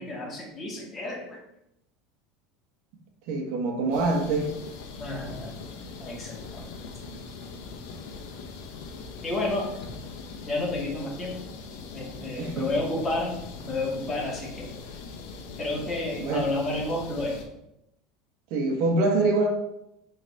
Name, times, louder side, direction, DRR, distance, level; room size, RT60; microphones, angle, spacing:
voice 1, 0.0-1.4 5.0-5.5 6.0-6.7 9.2-9.8 10.5-11.4 11.9-14.7 15.6-17.4, left 2 dB, 25° left, -4 dB, 2.2 m, -31 dB
voice 2, 3.3-4.5 12.4-12.7 16.2-16.5 18.5-19.5, right 2 dB, 65° right, 2 dB, 1.5 m, -24 dB
sound 1, 3.9-17.4, left 4 dB, 75° left, 1.1 m, -41 dB
6.3 x 4.0 x 4.2 m, 0.84 s
supercardioid pair, 115°, 0 cm